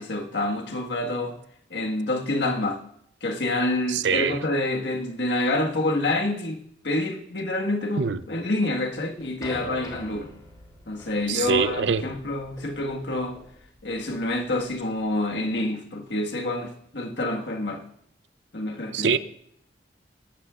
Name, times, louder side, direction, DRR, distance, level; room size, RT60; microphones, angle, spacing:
voice 1, 0.0-1.4 1.7-2.8 3.2-6.6 6.8-10.3 10.9-13.4 13.8-17.8 18.5-19.2, left 2 dB, 75° left, 3 dB, 1.6 m, -27 dB
voice 2, 3.9-4.4 8.0-8.2 11.3-12.0 18.9-19.2, right 6 dB, 85° right, 14 dB, 0.6 m, -24 dB
sound 1, 9.2-15.6, equal, 20° left, 5.7 m, -45 dB
21.0 x 12.5 x 2.4 m, 0.70 s
head